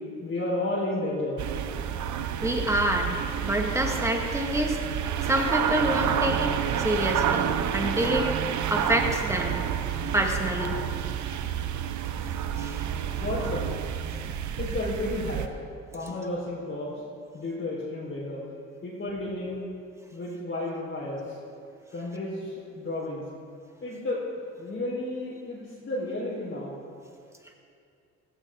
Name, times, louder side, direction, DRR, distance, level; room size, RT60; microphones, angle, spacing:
voice 1, 0.2-1.4 13.2-13.7 14.6-15.5 15.9-17.0 17.3-18.4 18.8-19.6 20.1-21.2 21.9-23.2 23.8-24.2 24.6-26.7, left 2 dB, 40° left, -7 dB, 4.5 m, -32 dB
sound 1, 1.4-15.5, right 9 dB, 70° right, 0.9 m, -29 dB
voice 2, 2.4-4.8 5.2-8.3 8.7-9.6 10.1-10.8 12.6-12.9, right 1 dB, 10° right, 2 dB, 2.1 m, -27 dB
16.5 x 15.0 x 3.9 m, 2.4 s
cardioid pair, 90°, 30 cm